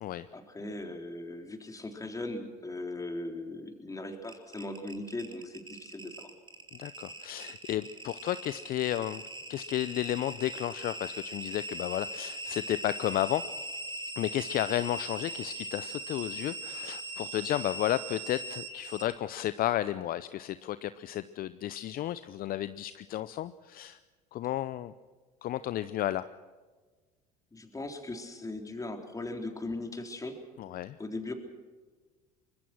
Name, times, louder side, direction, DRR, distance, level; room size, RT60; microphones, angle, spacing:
voice 1, 0.3-6.3 27.5-30.4 31.0-31.3, left 2 dB, 15° left, 4 dB, 4.0 m, -39 dB
sound 1, 4.2-19.1, right 1 dB, 25° right, 4.1 m, -40 dB
voice 2, 6.7-9.2 9.5-13.4 14.2-24.0 24.3-24.9 25.4-26.3 30.6-31.0, left 13 dB, 50° left, 14 dB, 0.7 m, -33 dB
24.5 x 21.0 x 6.2 m, 1.4 s
hypercardioid pair, 70°, 20 cm